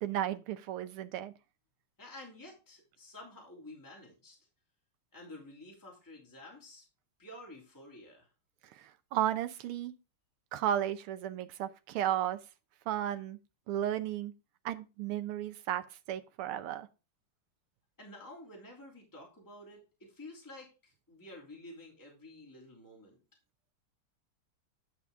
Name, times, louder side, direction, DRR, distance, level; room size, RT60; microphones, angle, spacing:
voice 1, 0.0-1.3 8.7-9.9 10.5-12.4 12.9-13.4 13.7-14.3 14.6-16.9, right 11 dB, 85° right, 1.7 m, -34 dB
voice 2, 2.0-4.4 5.1-6.8 7.2-8.3 18.0-23.2, left 1 dB, 10° left, 2.8 m, -51 dB
10.5 x 6.0 x 3.6 m
omnidirectional pair, 2.4 m